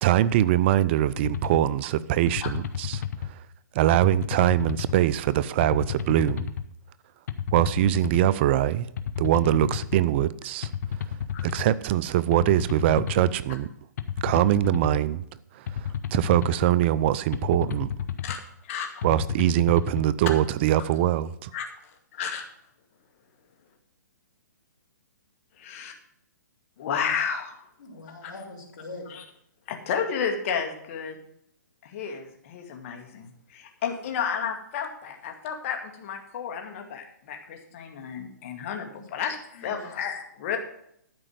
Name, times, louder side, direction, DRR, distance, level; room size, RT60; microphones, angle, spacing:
voice 1, 0.0-3.4 3.7-6.5 7.5-8.9 9.2-10.7 11.4-13.7 14.2-15.2 15.5-17.9 19.0-21.5, right 13 dB, 35° right, 0.5 m, -23 dB
sound 1, 1.2-1.6 2.3-3.3 3.9-5.0 5.6-6.6 7.3-8.3 9.0-10.0 10.6-11.7 12.3-13.3 14.0-15.0 15.7-16.7 17.3-18.4 19.0-20.0, left 9 dB, 60° left, 1.1 m, -31 dB
voice 2, 18.6-19.1 21.5-22.4 25.6-25.9 26.8-27.6 28.2-28.3 29.1-29.2 29.7-31.2 31.8-40.6, left 7 dB, 45° left, 2.2 m, -32 dB
voice 3, 27.8-29.1 38.9-39.0 39.5-40.0, left 2 dB, 85° left, 3.6 m, -42 dB
12.5 x 5.1 x 7.9 m
hypercardioid pair, 140°, 10 cm